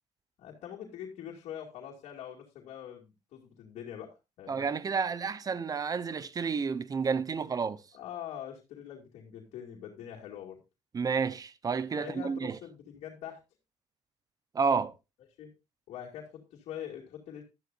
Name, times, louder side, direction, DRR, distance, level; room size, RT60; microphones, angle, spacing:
voice 1, 0.4-4.7 7.9-10.6 12.0-13.4 15.4-15.5 15.9-17.4, left 9 dB, 75° left, 2.6 m, -43 dB
voice 2, 4.5-7.8 10.9-12.6 14.5-14.9, right 5 dB, 35° right, 0.9 m, -30 dB
12.5 x 11.5 x 2.7 m
cardioid pair, 90°, 11 cm